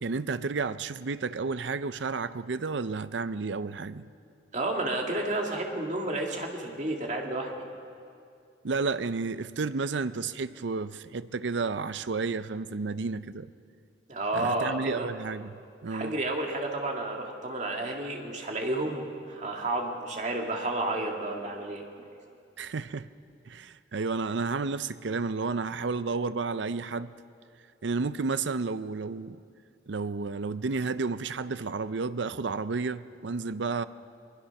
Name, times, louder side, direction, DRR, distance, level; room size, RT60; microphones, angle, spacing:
voice 1, 0.0-4.0 8.6-13.5 14.3-16.2 22.6-23.1 23.5-27.1 27.8-29.4 29.9-33.9, right 4 dB, 75° right, 0.6 m, -31 dB
voice 2, 4.5-7.5 14.1-15.1 15.9-21.8, right 2 dB, 40° right, 2.2 m, -31 dB
22.0 x 21.5 x 5.9 m
head